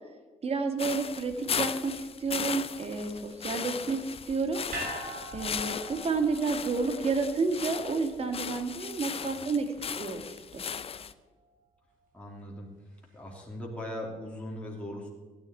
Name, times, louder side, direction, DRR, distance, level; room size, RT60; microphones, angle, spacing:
voice 1, 0.4-4.6 5.3-9.7 10.0-10.6, right 4 dB, 45° right, 6 dB, 1.8 m, -30 dB
sound 1, 0.8-11.1, left 7 dB, 40° left, 0.6 m, -37 dB
sound 2, 4.7-9.1 9.4-9.5, right 1 dB, 70° right, 3.8 m, -43 dB
voice 2, 12.1-12.7 13.1-15.1, left 1 dB, 10° left, -3 dB, 2.9 m, -39 dB
16.0 x 10.5 x 4.4 m, 1.3 s
cardioid pair, 80°, 14 cm